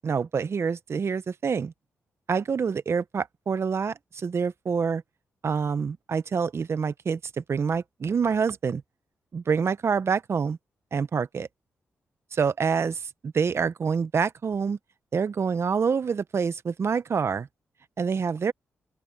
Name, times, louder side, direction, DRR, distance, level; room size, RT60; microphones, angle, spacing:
voice 1, 0.0-1.7 2.3-5.0 5.4-8.8 9.3-10.6 10.9-11.5 12.3-14.8 15.1-17.5 18.0-18.5, right 6 dB, 55° right, 1.2 m, -26 dB
open air
supercardioid pair, 50°, 5 cm